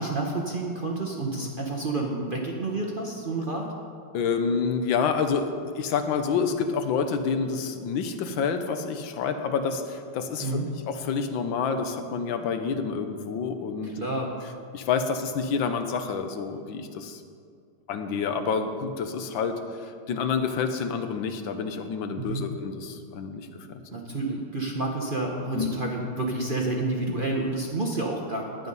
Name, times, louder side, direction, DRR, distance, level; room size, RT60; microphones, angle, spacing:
voice 1, 0.0-3.7 10.4-10.7 13.8-14.3 22.2-22.4 23.9-28.7, right 2 dB, 45° right, 0 dB, 0.6 m, -29 dB
voice 2, 4.1-10.5 10.9-13.9 14.7-17.2 17.9-23.5 25.5-25.7, left 5 dB, 70° left, 7 dB, 1.5 m, -28 dB
11.0 x 9.9 x 5.4 m, 2.2 s
omnidirectional pair, 2.3 m